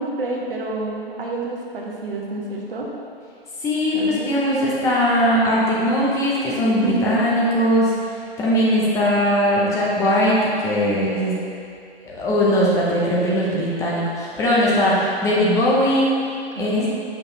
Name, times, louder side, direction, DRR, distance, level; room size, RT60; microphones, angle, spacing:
voice 1, 0.0-2.9 3.9-4.3 6.8-7.2 16.6-16.9, right 2 dB, 60° right, -2 dB, 1.2 m, -28 dB
voice 2, 3.6-7.9 8.4-11.4 12.0-16.1 16.6-16.8, equal, 10° left, -6 dB, 0.6 m, -19 dB
6.5 x 5.8 x 2.8 m, 2.5 s
figure-of-eight pair, 120°, 31 cm